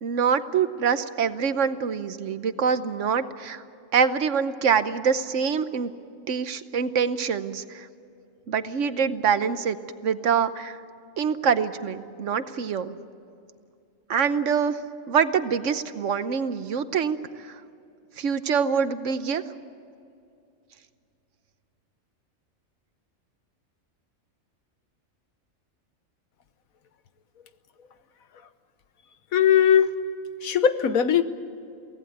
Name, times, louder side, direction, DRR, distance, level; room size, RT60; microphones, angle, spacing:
voice 1, 0.0-3.6 3.9-5.9 6.3-7.9 8.5-9.8 10.0-10.8 11.2-12.9 14.1-14.8 15.1-17.6 18.2-19.4, right 6 dB, 65° right, 12 dB, 1.2 m, -25 dB
voice 2, 29.3-30.0 30.4-31.2, left 8 dB, 85° left, 11 dB, 1.5 m, -19 dB
23.5 x 17.5 x 9.4 m, 2.4 s
omnidirectional pair, 1.4 m